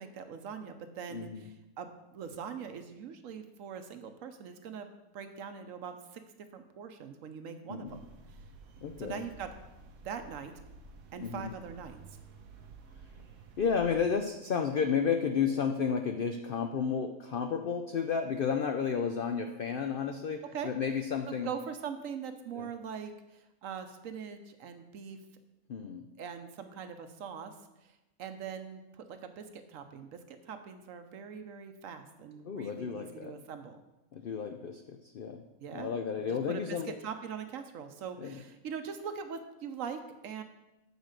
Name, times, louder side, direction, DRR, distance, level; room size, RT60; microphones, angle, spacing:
voice 1, 0.0-6.2 6.5-8.1 9.0-9.5 10.0-10.5 11.1-12.2 20.5-20.7 21.3-25.2 26.2-27.5 27.8-27.9 28.2-33.8 35.6-35.9 36.2-40.4, right 7 dB, 65° right, 8 dB, 1.0 m, -42 dB
voice 2, 1.1-1.5 7.7-8.0 8.8-9.2 11.2-11.5 13.6-21.5 22.6-22.7 25.7-26.1 32.4-33.3 34.1-35.4 35.7-36.9 38.2-38.4, left 6 dB, 80° left, 5 dB, 0.4 m, -32 dB
sound 1, 7.8-14.1, right 3 dB, 90° right, 1.4 m, -52 dB
8.1 x 4.5 x 6.4 m, 0.97 s
omnidirectional pair, 1.6 m